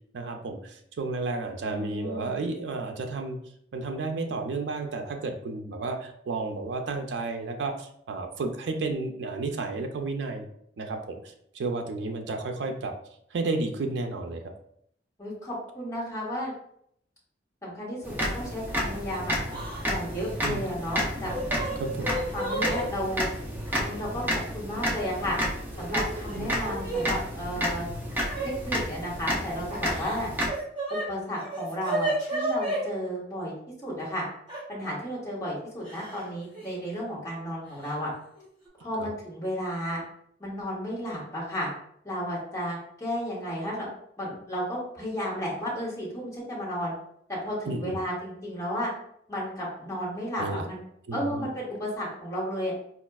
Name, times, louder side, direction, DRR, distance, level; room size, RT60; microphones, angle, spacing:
voice 1, 0.1-3.4 3.7-10.5 10.8-12.9 13.3-14.4 20.4-20.6 21.8-22.1 26.4-26.5 39.0-39.1 47.7-48.0 50.4-50.7 51.1-51.5, right 3 dB, 75° right, 4 dB, 0.4 m, -32 dB
voice 2, 1.6-2.3 15.2-16.5 17.6-19.4 19.8-21.3 22.1-23.3 23.8-25.4 25.8-27.9 28.4-30.3 30.9-33.5 33.8-34.2 34.7-38.1 38.8-40.0 40.4-41.7 42.0-43.9 44.2-46.9 47.3-48.9 49.3-50.8 51.1-52.7, equal, 15° left, -8 dB, 1.3 m, -33 dB
sound 1, 18.0-30.5, equal, 10° right, 0.4 m, -31 dB
Yell / Crying sobbing, 19.5-19.8 20.1-20.3 21.0-22.8 23.8-23.9 24.9-25.4 25.8-27.0 28.2-28.5 29.7-31.0 31.4-32.8 34.5-34.6 35.8-36.3 36.5-36.7 37.8-37.9 38.3-38.7, right 2 dB, 30° right, 1.5 m, -32 dB
4.2 x 2.3 x 2.3 m, 0.69 s
head